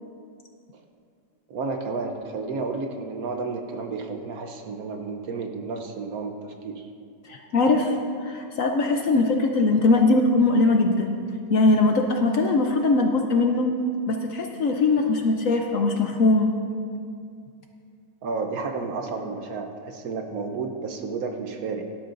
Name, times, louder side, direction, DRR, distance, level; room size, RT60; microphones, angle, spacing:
voice 1, 1.5-6.9 18.2-21.9, right 4 dB, 60° right, 4 dB, 1.1 m, -31 dB
voice 2, 7.3-11.2 11.5-13.7 14.1-16.5, left 3 dB, 60° left, 3 dB, 0.9 m, -21 dB
17.5 x 11.5 x 2.6 m, 2.3 s
omnidirectional pair, 1.9 m